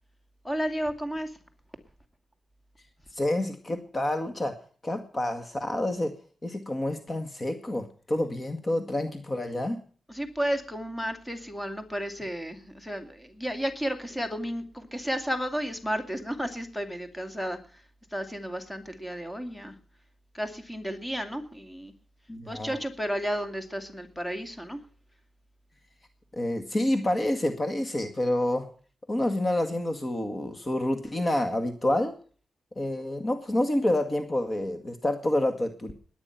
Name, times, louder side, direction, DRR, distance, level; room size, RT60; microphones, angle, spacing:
voice 1, 0.4-1.4 10.1-17.8 18.1-19.8 20.3-21.9 22.5-24.8, equal, 10° left, 8 dB, 2.6 m, -32 dB
voice 2, 3.1-4.5 4.8-6.1 6.4-9.8 22.3-22.7 26.3-28.7 29.1-32.1 32.8-35.9, left 1 dB, 30° left, 7 dB, 2.0 m, -28 dB
20.0 x 9.8 x 5.9 m, 0.42 s
cardioid pair, 95°, 0 cm